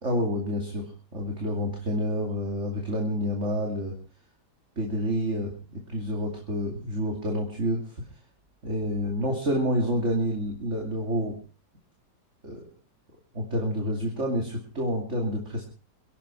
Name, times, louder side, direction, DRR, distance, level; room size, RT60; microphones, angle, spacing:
voice 1, 0.0-3.9 4.8-7.8 8.6-11.4 12.4-12.6 13.3-15.7, equal, 40° right, 1 dB, 3.0 m, -28 dB
24.5 x 11.0 x 4.5 m, 0.37 s
omnidirectional pair, 1.8 m